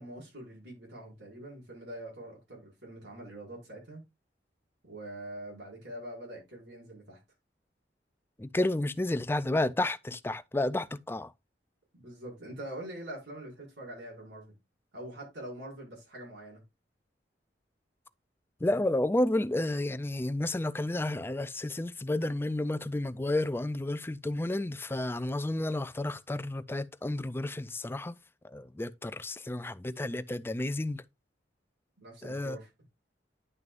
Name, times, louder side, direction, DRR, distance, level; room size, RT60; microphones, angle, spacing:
voice 1, 0.0-4.0 4.8-7.2 11.9-14.5 14.9-16.6 32.0-32.7, right 1 dB, 80° right, 5.3 m, -44 dB
voice 2, 8.4-11.3 18.6-28.2 28.4-31.0 32.2-32.6, left 1 dB, 15° left, 0.4 m, -31 dB
10.5 x 6.3 x 2.5 m
head